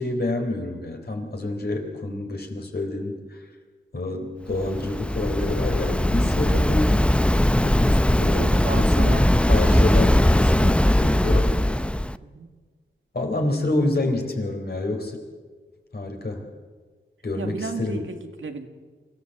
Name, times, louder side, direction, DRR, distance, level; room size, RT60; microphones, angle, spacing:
voice 1, 0.0-3.4 3.9-7.0 7.6-9.2 9.5-11.5 13.1-15.2 15.9-16.4 17.2-18.0, left 2 dB, 55° left, 3 dB, 3.9 m, -28 dB
Waves surf, 4.5-12.2, left 1 dB, 5° left, 0.6 m, -20 dB
voice 2, 8.2-9.3 12.2-12.5 17.4-18.7, right 4 dB, 85° right, 5 dB, 1.9 m, -35 dB
25.0 x 15.5 x 7.8 m, 1.4 s
wide cardioid pair, 75°, 20 cm